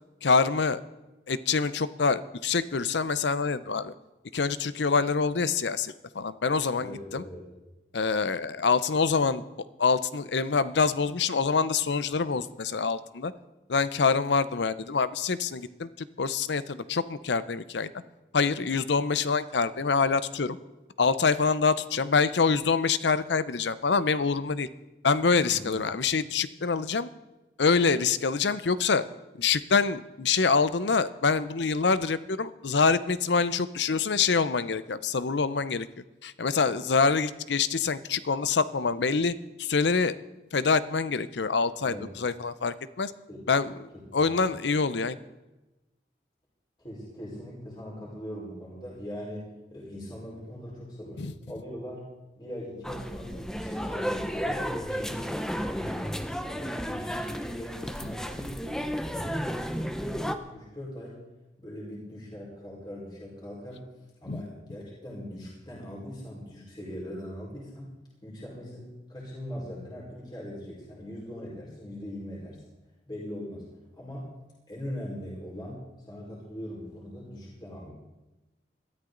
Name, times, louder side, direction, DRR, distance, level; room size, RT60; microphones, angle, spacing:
voice 1, 0.2-0.8 1.3-3.9 4.3-7.2 7.9-9.4 9.8-13.3 13.7-17.9 18.3-20.6 21.0-24.7 25.0-27.1 27.6-29.0 29.4-35.9 36.2-40.2 40.5-43.1 43.5-45.2 51.2-51.3 64.3-64.4, left 5 dB, 90° left, 15 dB, 0.7 m, -26 dB
voice 2, 6.8-7.5 25.5-25.8 41.8-42.1 43.3-43.5 44.2-44.5 46.8-52.0 52.4-55.3 55.7-56.1 56.4-61.2 61.6-63.8 64.2-67.9 68.2-72.6 73.1-73.7 73.9-74.3 74.7-77.9, equal, 25° left, -5 dB, 4.6 m, -40 dB
sound 1, 52.8-60.4, equal, 5° left, 0.6 m, -33 dB
21.5 x 13.0 x 3.9 m, 1.0 s
head